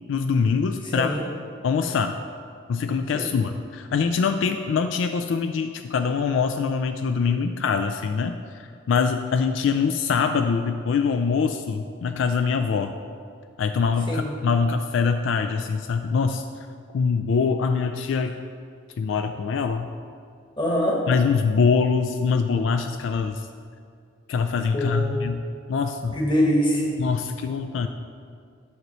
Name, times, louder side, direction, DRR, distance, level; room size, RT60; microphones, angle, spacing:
voice 1, 0.1-1.2 1.6-2.2 2.7-12.9 13.6-16.4 16.9-18.4 19.0-19.9 21.1-23.5 24.3-25.4 25.7-26.2 27.0-27.9, left 5 dB, 75° left, 7 dB, 0.3 m, -24 dB
voice 2, 0.9-1.2 3.1-3.3 14.1-14.3 20.6-21.0 24.7-25.2 26.1-27.0, equal, 25° left, -2 dB, 1.1 m, -23 dB
9.3 x 3.1 x 6.5 m, 2.2 s
head